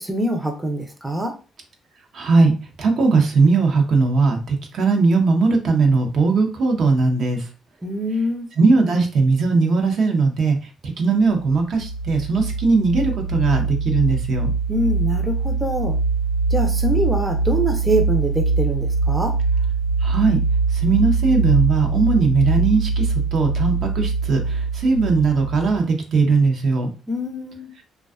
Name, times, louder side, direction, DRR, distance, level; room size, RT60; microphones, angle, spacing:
voice 1, 0.0-1.4 7.8-8.5 14.7-16.0 16.5-19.4 27.1-27.7, right 1 dB, 10° right, 2 dB, 0.5 m, -24 dB
voice 2, 2.1-7.5 8.6-10.6 10.8-14.5 20.0-20.4 20.7-26.9, right 4 dB, 65° right, 3 dB, 0.6 m, -19 dB
sound 1, 11.3-25.8, right 4 dB, 90° left, 0.5 m, -23 dB
2.5 x 2.2 x 2.3 m, 0.34 s
cardioid pair, 90°, 0 cm